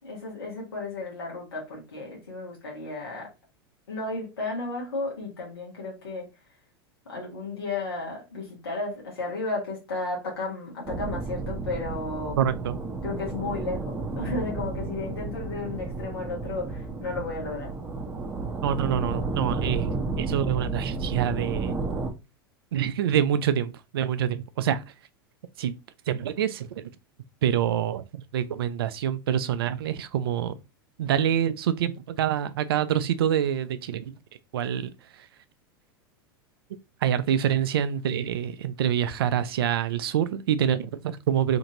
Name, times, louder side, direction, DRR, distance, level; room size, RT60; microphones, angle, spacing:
voice 1, 0.0-3.3 3.9-6.3 7.0-12.4 13.0-17.7, left 3 dB, 90° left, 1.1 m, -33 dB
sound 1, 10.9-22.1, right 3 dB, 15° right, 0.7 m, -32 dB
voice 2, 12.4-12.8 18.6-19.9 20.2-21.8 22.7-24.8 25.6-25.7 26.1-26.8 27.4-28.0 28.3-30.5 31.0-34.1 34.5-35.3 37.0-41.6, right 9 dB, 75° right, 0.4 m, -26 dB
2.9 x 2.6 x 2.8 m
hypercardioid pair, 95°, 12 cm